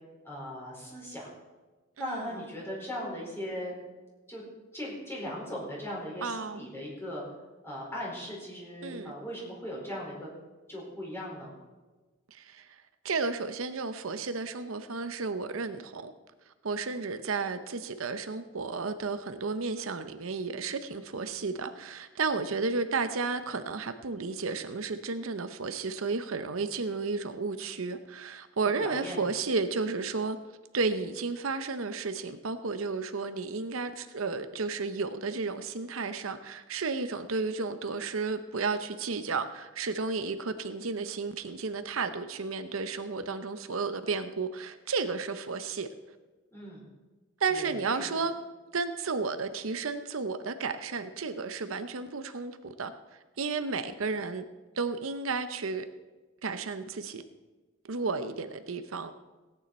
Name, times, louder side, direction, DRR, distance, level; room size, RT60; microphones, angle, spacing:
voice 1, 0.2-1.3 2.0-3.8 4.3-4.4 4.7-7.2 7.6-10.3 10.7-11.5 28.6-29.2 46.5-46.9 47.5-47.7 48.0-48.2, equal, 10° left, -5 dB, 4.8 m, -38 dB
voice 2, 2.0-2.3 6.2-6.6 8.8-9.1 12.3-12.7 13.0-16.1 16.6-30.4 30.7-45.9 47.4-48.3 48.7-52.9 53.4-54.4 54.8-55.8 56.4-57.2 57.8-59.1, right 4 dB, 80° right, 10 dB, 0.8 m, -32 dB
17.0 x 9.3 x 4.3 m, 1.3 s
head